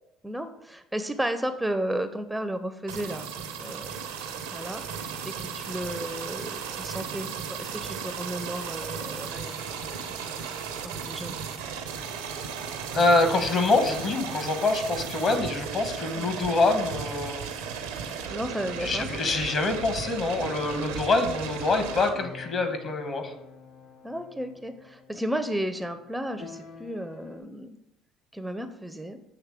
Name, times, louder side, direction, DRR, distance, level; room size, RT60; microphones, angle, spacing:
voice 1, 0.2-3.3 3.6-4.8 5.2-10.3 10.8-11.4 16.2-16.3 18.3-19.1 24.0-27.7 28.3-29.2, right 1 dB, 5° right, 9 dB, 0.4 m, -33 dB
sound 1, 2.9-22.1, right 6 dB, 90° right, 0.7 m, -35 dB
voice 2, 12.9-17.5 18.8-23.3, left 3 dB, 50° left, 7 dB, 1.1 m, -25 dB
sound 2, 18.5-27.4, left 4 dB, 85° left, 1.5 m, -48 dB
7.2 x 3.1 x 4.8 m, 0.84 s
hypercardioid pair, 70°, 0 cm